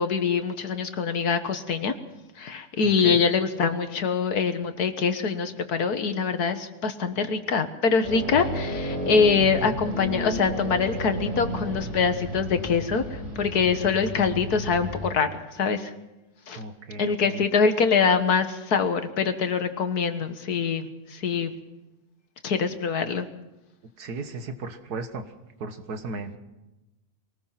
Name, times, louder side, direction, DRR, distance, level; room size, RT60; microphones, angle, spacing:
voice 1, 0.0-1.9 2.4-15.9 16.5-16.6 17.0-21.5 22.4-23.3, left 5 dB, 80° left, 9 dB, 1.9 m, -24 dB
voice 2, 2.8-3.2 16.6-17.4 24.0-25.3 25.6-26.4, right 3 dB, 90° right, 8 dB, 2.0 m, -35 dB
car engine, 8.0-15.1, equal, 50° right, 4.2 m, -32 dB
23.5 x 19.0 x 5.9 m, 0.98 s
omnidirectional pair, 1.6 m